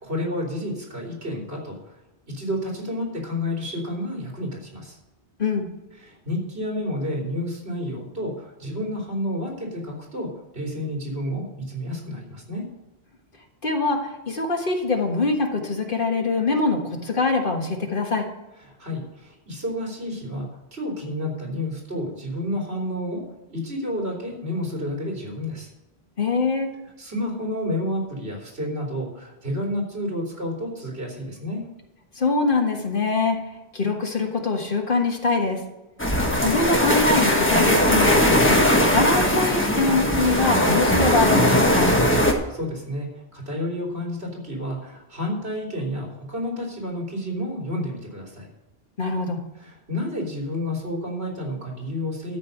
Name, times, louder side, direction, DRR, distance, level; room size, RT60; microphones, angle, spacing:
voice 1, 0.0-2.0 2.3-5.0 6.0-12.6 18.7-23.2 23.5-25.7 27.0-31.7 42.3-48.5 49.6-52.4, left 1 dB, 70° right, -1 dB, 3.6 m, -30 dB
voice 2, 13.6-18.3 26.2-26.7 32.2-33.4 33.7-35.6 36.4-38.6 38.9-41.9 49.0-49.4, left 3 dB, 55° left, 2 dB, 1.7 m, -23 dB
sound 1, 36.0-42.3, left 1 dB, 10° left, 1.3 m, -19 dB
13.0 x 5.3 x 8.1 m, 0.99 s
omnidirectional pair, 1.1 m